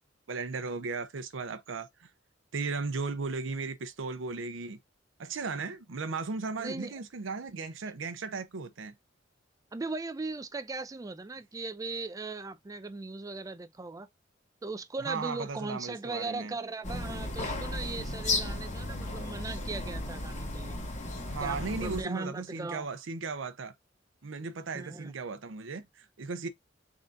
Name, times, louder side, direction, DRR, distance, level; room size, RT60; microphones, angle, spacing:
voice 1, 0.3-2.1 2.5-4.8 5.2-8.9 15.0-16.5 21.3-23.7 24.2-26.5, right 4 dB, 85° right, 0.6 m, -36 dB
voice 2, 6.6-6.9 9.7-14.1 14.6-20.8 21.4-22.9 24.7-25.1, right 3 dB, 20° right, 0.4 m, -38 dB
sound 1, 16.8-22.0, left 2 dB, 40° left, 1.0 m, -35 dB
3.7 x 3.7 x 2.5 m
head